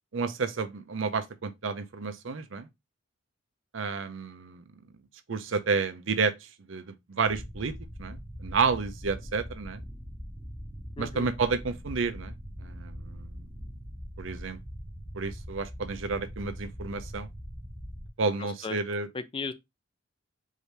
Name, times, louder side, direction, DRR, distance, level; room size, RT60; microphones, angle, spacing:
voice 1, 0.1-2.7 3.7-4.6 5.3-7.7 8.0-9.8 11.0-12.3 12.6-13.5 14.2-14.6 15.1-17.3 18.2-19.1, right 4 dB, 80° right, 0.6 m, -31 dB
sound 1, 7.3-18.1, equal, 10° right, 0.7 m, -42 dB
voice 2, 11.0-11.3 18.4-18.8 19.1-19.5, left 4 dB, 25° left, 0.4 m, -36 dB
4.8 x 2.7 x 3.3 m
head